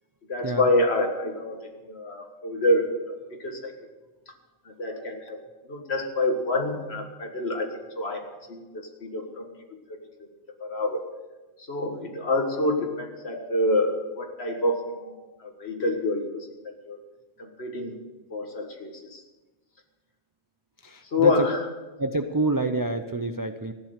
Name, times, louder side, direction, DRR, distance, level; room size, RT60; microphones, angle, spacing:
voice 1, 0.3-3.7 4.7-5.4 5.7-7.7 8.0-9.5 9.9-10.0 10.6-11.0 11.6-16.5 16.8-17.0 17.4-18.0 18.3-19.2 21.1-21.7, left 2 dB, 55° left, 4 dB, 2.0 m, -27 dB
voice 2, 20.8-21.3 22.0-23.7, right 2 dB, 25° right, 7 dB, 0.4 m, -27 dB
15.0 x 10.0 x 6.6 m, 1.2 s
omnidirectional pair, 1.3 m